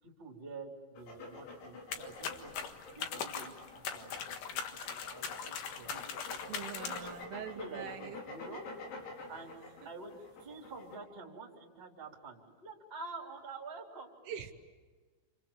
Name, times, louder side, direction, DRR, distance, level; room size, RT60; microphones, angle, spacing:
voice 1, 0.0-2.5 2.9-3.5 3.9-6.5 6.8-7.3 7.5-8.6 9.3-9.6 9.8-14.1, right 3 dB, 15° right, -1 dB, 3.0 m, -48 dB
sound 1, 1.0-11.0, left 3 dB, 80° left, 7.8 m, -48 dB
sound 2, 1.9-7.2, left 6 dB, 60° left, 2.4 m, -40 dB
voice 2, 6.5-8.2 9.8-9.9 14.3-14.5, right 8 dB, 75° right, 4 dB, 3.9 m, -43 dB
29.5 x 28.0 x 7.3 m, 1.4 s
omnidirectional pair, 6.0 m